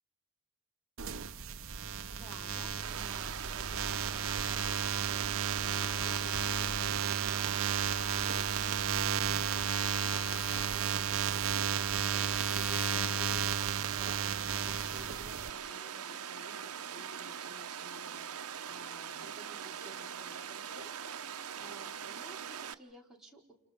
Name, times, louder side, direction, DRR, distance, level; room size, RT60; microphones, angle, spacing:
sound 1, 1.0-15.5, right 7 dB, 60° right, 0.9 m, -33 dB
voice 1, 2.1-23.5, right 2 dB, ahead, -4 dB, 4.5 m, -55 dB
Water, 2.8-22.7, right 8 dB, 90° right, 0.9 m, -42 dB
29.5 x 29.5 x 5.3 m, 0.73 s
head